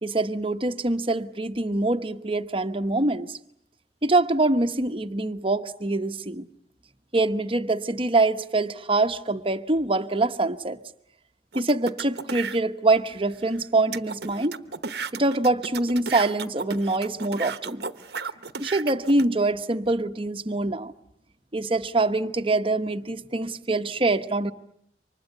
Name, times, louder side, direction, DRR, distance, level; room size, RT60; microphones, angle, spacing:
voice 1, 0.0-3.4 4.0-6.4 7.1-10.8 11.5-14.6 15.1-17.8 18.6-20.9 21.5-24.5, right 2 dB, 30° right, 1.1 m, -24 dB
sound 1, 11.5-12.6 13.2-13.3 13.5-13.6 13.9-19.3, right 5 dB, 60° right, 1.1 m, -34 dB
29.0 x 25.0 x 8.0 m
head